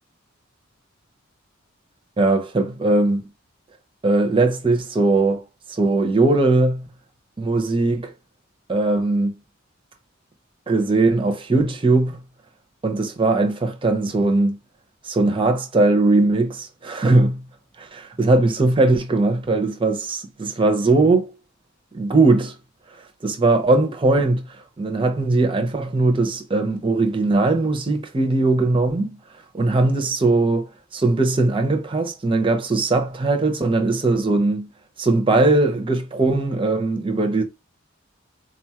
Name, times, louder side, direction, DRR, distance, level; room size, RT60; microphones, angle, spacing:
voice 1, 2.2-3.2 4.0-5.4 5.8-6.9 7.4-8.1 8.7-9.4 10.7-12.2 12.8-14.6 15.0-17.5 17.8-21.3 21.9-22.5 23.2-29.2 29.5-34.7 35.0-37.4, right 2 dB, 25° right, 0.6 m, -19 dB
3.9 x 2.3 x 2.8 m
head